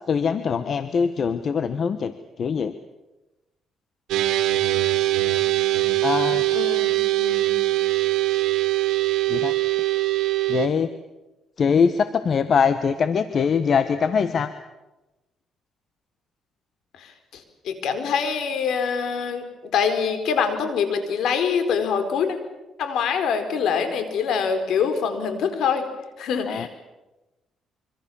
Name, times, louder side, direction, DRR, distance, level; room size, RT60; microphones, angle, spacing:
voice 1, 0.1-2.7 6.0-6.4 9.3-9.5 10.5-10.9 11.6-14.5 26.5-26.7, left 6 dB, 50° left, 10 dB, 1.3 m, -22 dB
sound 1, 4.1-10.7, right 17 dB, 85° right, 2.1 m, -22 dB
voice 2, 6.5-7.6 16.9-19.4 19.7-22.4 22.8-25.8 26.2-26.7, left 6 dB, 75° left, 8 dB, 4.4 m, -25 dB
26.0 x 25.0 x 7.2 m, 1.0 s
cardioid pair, 90°, 0 cm